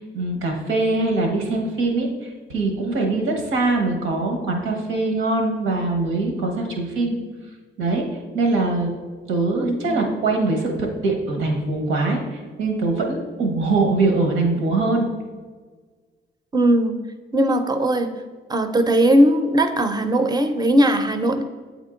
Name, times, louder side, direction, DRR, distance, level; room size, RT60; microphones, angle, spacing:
voice 1, 0.0-7.2 7.8-8.0 8.3-8.9 9.3-15.1, right 3 dB, 85° right, 2 dB, 1.2 m, -22 dB
voice 2, 9.6-10.1 16.5-17.0 17.3-18.1 18.5-21.4, right 1 dB, 20° right, 7 dB, 0.6 m, -19 dB
7.9 x 3.6 x 3.8 m, 1.4 s
cardioid pair, 90°, 20 cm